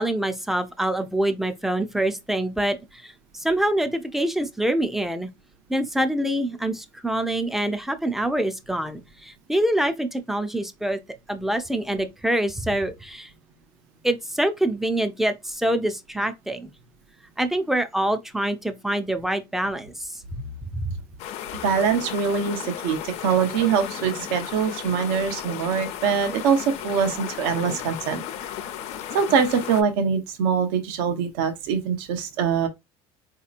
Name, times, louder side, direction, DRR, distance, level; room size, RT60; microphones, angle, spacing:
voice 1, 0.0-5.3 5.7-11.0 11.3-13.3 14.0-16.7 17.4-20.4 20.7-21.0, right 1 dB, ahead, 0.3 m, -25 dB
sound 1, 21.2-29.8, left 10 dB, 55° left, 0.5 m, -35 dB
voice 2, 21.6-28.2 29.1-32.7, right 6 dB, 85° right, 0.8 m, -23 dB
4.0 x 2.8 x 2.4 m
cardioid pair, 155°, 13 cm